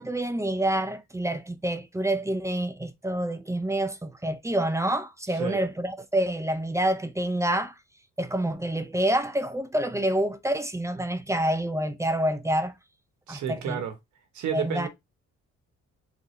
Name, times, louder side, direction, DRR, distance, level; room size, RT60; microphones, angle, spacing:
voice 1, 0.0-7.7 8.2-12.7 13.3-13.8 14.5-14.9, right 1 dB, 10° right, 0.5 m, -27 dB
voice 2, 5.3-5.6 13.3-14.0 14.3-14.9, right 8 dB, 70° right, 1.1 m, -31 dB
3.6 x 2.7 x 3.2 m
cardioid pair, 90°, 30 cm